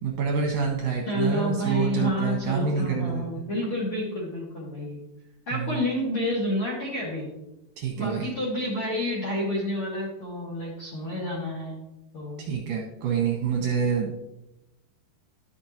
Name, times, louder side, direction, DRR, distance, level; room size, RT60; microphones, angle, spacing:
voice 1, 0.0-3.3 5.5-5.8 7.8-8.3 12.4-14.2, right 6 dB, 70° right, 0 dB, 2.2 m, -27 dB
voice 2, 1.1-5.0 5.5-7.3 8.0-11.8 12.1-12.4, left 1 dB, 45° left, -4 dB, 2.0 m, -29 dB
12.0 x 6.7 x 2.9 m, 0.90 s
omnidirectional pair, 4.8 m